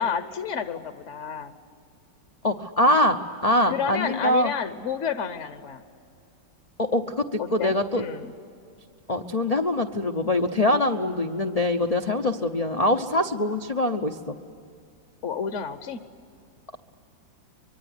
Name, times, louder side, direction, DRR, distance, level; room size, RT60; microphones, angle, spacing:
voice 1, 0.0-1.5 3.7-5.8 7.4-8.3 15.2-16.0, left 7 dB, 50° left, 10 dB, 0.9 m, -30 dB
voice 2, 2.4-4.5 6.8-8.0 9.1-14.4, left 1 dB, 70° left, 4 dB, 0.3 m, -23 dB
25.0 x 23.5 x 9.7 m, 2.4 s
omnidirectional pair, 2.1 m